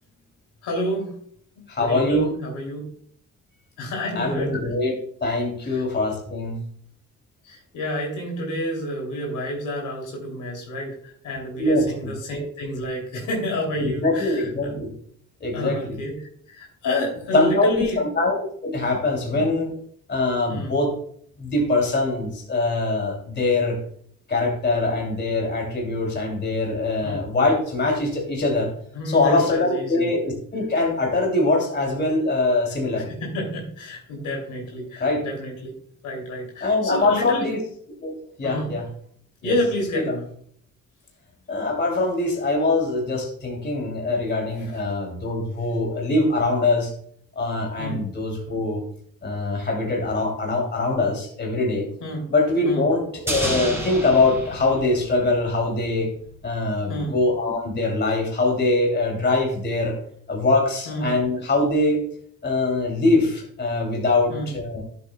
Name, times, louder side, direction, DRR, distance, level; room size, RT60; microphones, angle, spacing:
voice 1, 0.6-1.2 1.6-2.8 3.8-4.5 5.6-5.8 7.4-14.8 15.5-16.1 16.5-18.0 19.3-19.5 20.5-20.7 27.0-27.2 28.9-30.1 33.1-35.7 36.0-37.5 38.4-38.7 39.4-40.3 47.8-48.0 52.0-52.2 52.6-52.9 56.9-57.2 60.9-61.1 64.3-64.5, left 1 dB, 80° left, 0 dB, 2.8 m, -29 dB
voice 2, 1.7-2.3 4.1-6.6 11.6-12.1 13.8-14.9 15.4-16.0 17.3-19.7 20.1-20.9 21.4-23.8 24.3-28.7 29.1-33.2 35.0-35.2 36.6-37.6 38.0-38.9 39.4-39.5 39.9-40.2 41.5-46.9 47.4-48.8 49.2-51.9 52.3-56.1 56.4-60.0 60.3-62.0 62.4-64.8, left 2 dB, 35° left, 1 dB, 2.6 m, -23 dB
sound 1, 53.3-55.7 55.9-56.0, right 1 dB, 10° right, 3.2 m, -30 dB
12.0 x 7.6 x 2.2 m, 0.62 s
cardioid pair, 90°, 30 cm